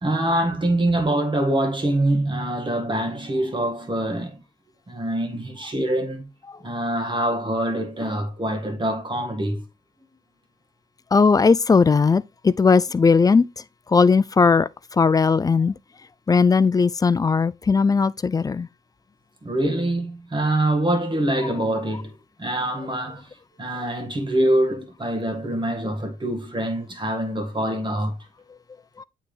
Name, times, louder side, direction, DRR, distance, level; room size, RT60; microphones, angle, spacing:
voice 1, 0.0-4.4 4.9-6.3 6.6-9.6 19.4-23.3 23.6-28.2, right 1 dB, 25° right, 1.5 m, -24 dB
voice 2, 11.1-13.4 13.9-15.7 16.3-18.7 29.0-29.1, left 5 dB, 20° left, 0.3 m, -18 dB
8.4 x 3.4 x 3.3 m
cardioid pair, 90°, 20 cm